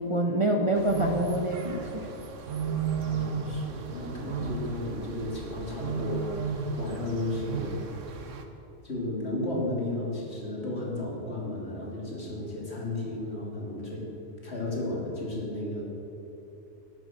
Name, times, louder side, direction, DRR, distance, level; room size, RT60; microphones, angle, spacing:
voice 1, 0.0-2.1, right 1 dB, 25° right, 1 dB, 1.0 m, -26 dB
sound 1, 0.7-8.4, right 5 dB, 85° right, 1.4 m, -34 dB
voice 2, 3.0-7.8 8.8-14.1 14.4-15.8, left 2 dB, 60° left, -3 dB, 3.0 m, -34 dB
12.0 x 11.0 x 7.6 m, 2.9 s
omnidirectional pair, 1.3 m